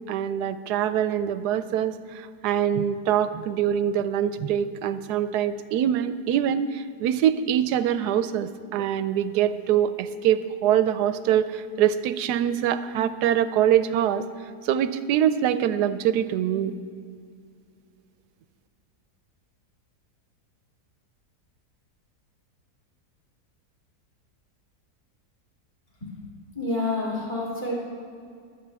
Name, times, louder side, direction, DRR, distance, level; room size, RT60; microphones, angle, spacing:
voice 1, 0.1-2.0 2.4-14.2 14.6-16.8, right 10 dB, 85° right, 12 dB, 1.1 m, -24 dB
voice 2, 26.0-27.7, left 2 dB, 30° left, -6 dB, 2.8 m, -29 dB
23.5 x 8.6 x 3.4 m, 2.2 s
omnidirectional pair, 1.7 m